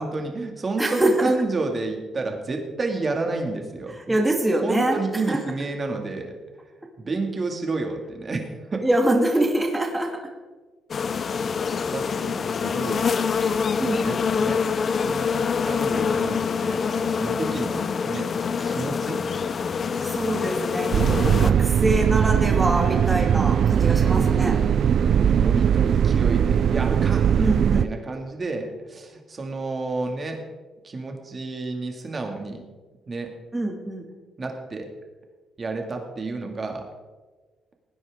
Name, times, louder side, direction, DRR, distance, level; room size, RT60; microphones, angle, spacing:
voice 1, 0.0-4.2 4.6-6.4 7.0-8.8 11.8-13.1 13.7-14.6 14.9-18.3 18.6-19.2 23.8-30.4 30.8-32.6 33.1-33.3 34.4-34.9 35.6-36.9, right 3 dB, 35° right, 3 dB, 2.2 m, -30 dB
voice 2, 0.8-1.3 4.1-5.0 5.3-5.4 8.8-10.1 13.8-14.3 20.0-24.6 27.4-27.9 33.5-34.1, right 1 dB, 15° right, 1 dB, 2.2 m, -24 dB
sound 1, 10.9-21.5, left 6 dB, 45° left, 0.6 m, -25 dB
sound 2, 20.9-27.8, right 8 dB, 60° right, 0.3 m, -20 dB
18.0 x 9.8 x 3.7 m, 1.3 s
cardioid pair, 90°, 0 cm